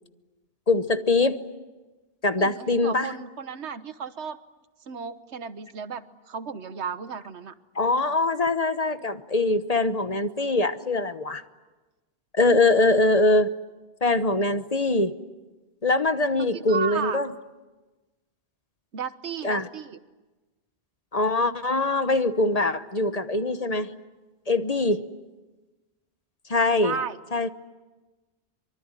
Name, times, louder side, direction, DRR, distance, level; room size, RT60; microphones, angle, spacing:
voice 1, 0.7-1.4 2.2-3.1 7.8-11.4 12.4-13.5 14.0-15.1 15.8-17.3 19.4-19.7 21.1-23.9 24.5-25.0 26.5-26.9 27.3-27.5, left 2 dB, 35° left, 10 dB, 1.1 m, -23 dB
voice 2, 2.4-4.4 4.8-7.5 16.4-17.2 18.9-20.0 26.8-27.2, right 6 dB, 90° right, 12 dB, 1.4 m, -34 dB
25.0 x 24.0 x 9.8 m, 1.2 s
omnidirectional pair, 1.1 m